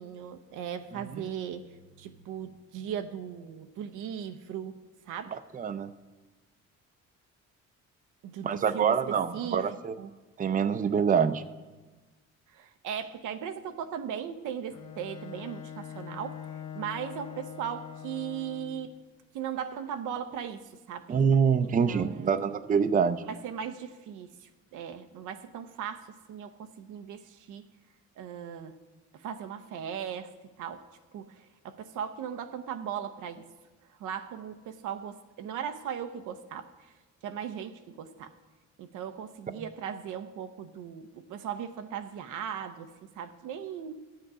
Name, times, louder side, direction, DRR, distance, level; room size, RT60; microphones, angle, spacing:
voice 1, 0.0-1.7 2.0-4.7 5.1-5.3 8.2-8.9 9.3-9.6 9.9-10.1 12.5-16.4 16.7-18.9 19.3-20.6 20.9-21.1 21.6-22.6 23.3-27.6 28.2-28.8 29.1-30.3 30.6-30.8 31.1-33.5 34.0-36.7 37.2-38.3 38.8-44.0, right 8 dB, 90° right, 9 dB, 0.7 m, -38 dB
voice 2, 5.3-5.9 8.4-9.9 10.4-11.4 21.1-23.2, right 6 dB, 30° right, 11 dB, 0.5 m, -25 dB
Bowed string instrument, 14.7-18.9, left 9 dB, 90° left, 1.0 m, -43 dB
13.0 x 7.6 x 4.8 m, 1.3 s
cardioid pair, 90°, 30 cm